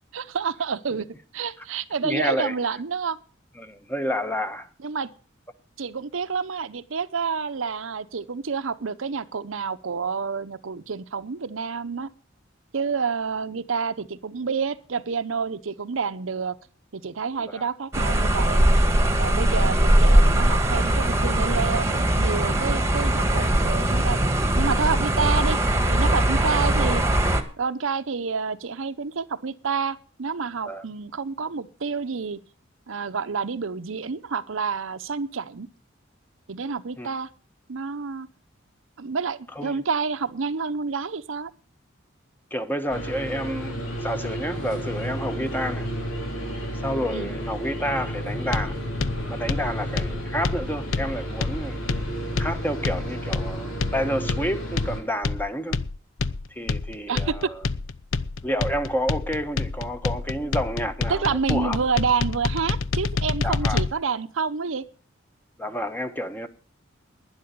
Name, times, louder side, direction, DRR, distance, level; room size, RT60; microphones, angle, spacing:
voice 1, 0.1-1.1 1.3-3.2 4.8-5.1 5.8-12.1 12.7-16.6 16.9-18.6 19.2-24.2 24.6-25.6 25.9-27.0 27.6-32.4 32.9-35.7 36.5-37.3 37.7-38.3 39.0-41.5 47.1-47.3 57.1-57.5 61.1-64.9, right 5 dB, 70° right, 0.7 m, -28 dB
voice 2, 2.0-2.5 3.6-4.7 17.4-17.6 30.6-30.8 37.0-37.1 39.5-39.8 42.5-45.9 46.8-48.8 49.3-51.9 52.4-55.8 56.5-57.7 58.4-61.8 63.4-63.8 65.6-66.5, equal, 10° left, 1.1 m, -29 dB
sound 1, 17.9-27.4, right 1 dB, 15° right, 1.4 m, -20 dB
sound 2, 42.9-55.0, equal, 85° left, 4.9 m, -32 dB
sound 3, 48.5-63.9, left 4 dB, 70° left, 0.6 m, -28 dB
11.5 x 10.5 x 6.7 m
head